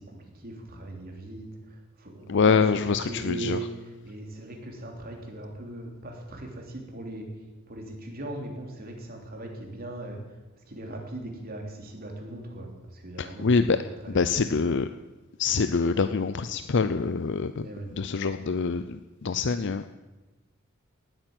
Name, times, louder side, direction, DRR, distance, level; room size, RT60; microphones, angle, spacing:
voice 1, 0.0-3.7 4.0-7.3 7.7-10.4 10.6-14.6 17.6-17.9, right 2 dB, 45° right, 2 dB, 3.2 m, -39 dB
voice 2, 2.3-3.6 13.2-13.8 14.1-14.9 15.4-17.7 17.9-19.9, left 5 dB, 55° left, 11 dB, 0.5 m, -25 dB
19.0 x 9.0 x 7.9 m, 1.2 s
head